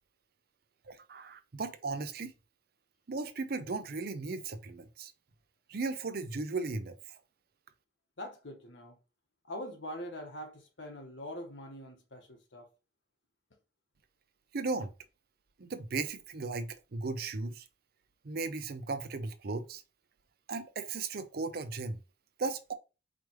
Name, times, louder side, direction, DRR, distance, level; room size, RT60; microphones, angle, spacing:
voice 1, 0.9-2.3 3.1-5.1 5.7-7.2 14.5-14.9 15.6-17.6 18.2-19.8 20.5-22.0 22.4-22.7, right 3 dB, 55° right, 0.6 m, -36 dB
voice 2, 8.2-9.0 9.5-12.7, equal, 80° left, 1.3 m, -43 dB
4.9 x 3.3 x 3.0 m
head